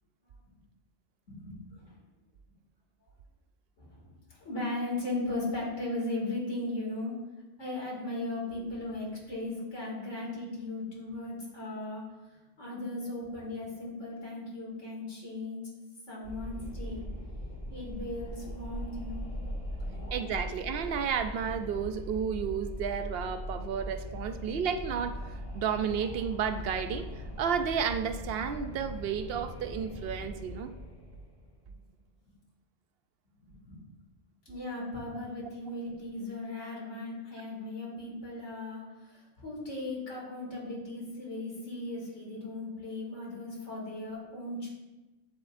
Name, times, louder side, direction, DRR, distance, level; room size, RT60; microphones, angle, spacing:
voice 1, 1.3-1.8 3.8-7.2 7.6-15.6 16.1-17.0 17.7-19.3 19.8-20.3 33.4-33.8 34.5-44.7, left 2 dB, 80° left, -4 dB, 2.9 m, -37 dB
Wind, 16.2-31.6, equal, 55° left, 2.1 m, -40 dB
voice 2, 20.1-30.7, right 7 dB, 65° right, 9 dB, 0.7 m, -32 dB
9.6 x 7.5 x 2.6 m, 1.1 s
omnidirectional pair, 1.2 m